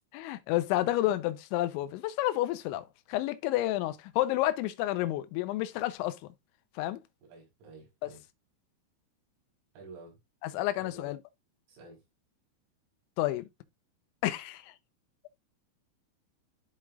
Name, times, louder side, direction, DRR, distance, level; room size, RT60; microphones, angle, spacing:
voice 1, 0.1-6.2 6.8-7.0 8.0-8.1 10.4-11.2 13.2-13.5 14.2-14.7, left 15 dB, 85° left, 2.8 m, -30 dB
voice 2, 7.2-8.2 9.8-10.2 10.8-11.1 11.7-12.0, right 3 dB, 85° right, 7.5 m, -50 dB
13.0 x 4.6 x 2.4 m
omnidirectional pair, 6.0 m